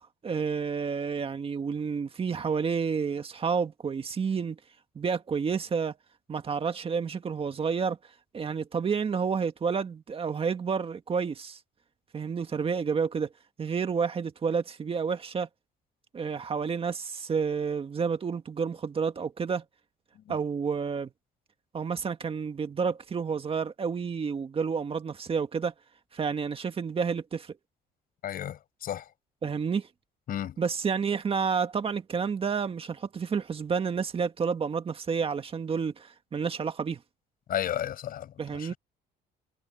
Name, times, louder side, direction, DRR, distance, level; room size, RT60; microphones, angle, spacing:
voice 1, 0.0-4.6 5.0-5.9 6.3-8.0 8.3-11.6 12.1-13.3 13.6-15.5 16.1-19.6 20.3-21.1 21.7-25.7 26.1-27.5 29.4-29.9 30.6-37.0 38.4-38.7, right 6 dB, 35° right, 1.8 m, -30 dB
voice 2, 28.2-29.1 30.3-30.6 37.5-38.8, left 11 dB, 60° left, 7.3 m, -33 dB
cardioid pair, 110°, 17 cm